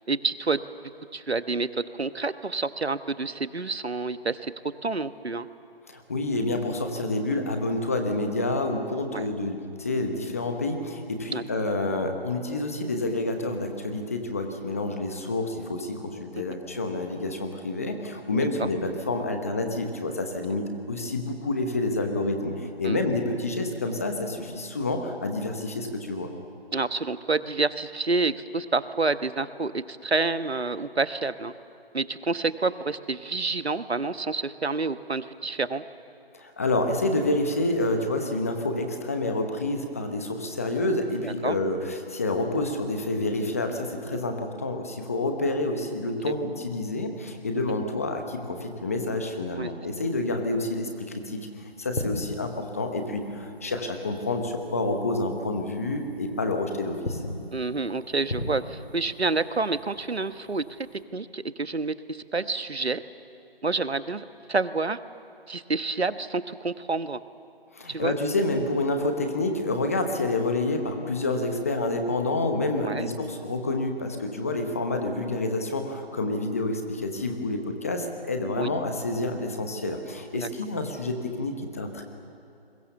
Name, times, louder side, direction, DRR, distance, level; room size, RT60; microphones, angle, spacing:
voice 1, 0.1-0.6 1.1-4.5 4.8-5.5 9.1-9.3 11.3-11.4 16.3-16.4 18.6-18.7 22.8-23.0 26.7-31.5 31.9-35.8 41.2-41.6 44.1-44.2 46.2-46.3 47.7-47.8 49.5-49.7 57.5-60.8 61.1-63.0 63.6-65.0 65.5-67.2 67.9-68.2 72.8-73.1 78.6-78.7 80.3-80.5, right 3 dB, 85° right, 12 dB, 1.3 m, -28 dB
voice 2, 5.9-26.3 36.3-51.5 51.8-57.2 67.7-82.0, left 2 dB, 15° left, 5 dB, 1.0 m, -28 dB
sound 1, 51.7-54.7 55.0-55.2 55.7-56.5 56.8-61.0, left 1 dB, 80° left, 3.5 m, -38 dB
28.5 x 22.5 x 7.0 m, 2.7 s
figure-of-eight pair, 165°, 31 cm